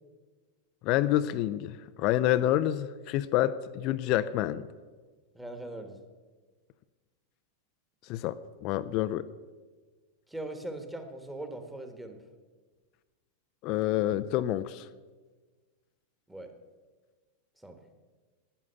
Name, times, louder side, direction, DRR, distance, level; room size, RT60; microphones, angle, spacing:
voice 1, 0.8-4.6 8.1-9.2 13.6-14.9, left 13 dB, 40° left, 13 dB, 0.4 m, -28 dB
voice 2, 5.3-6.0 10.3-12.2 16.3-16.5 17.6-17.8, right 1 dB, 5° right, 6 dB, 1.5 m, -40 dB
11.0 x 9.7 x 6.7 m, 1.4 s
figure-of-eight pair, 90°, 0 cm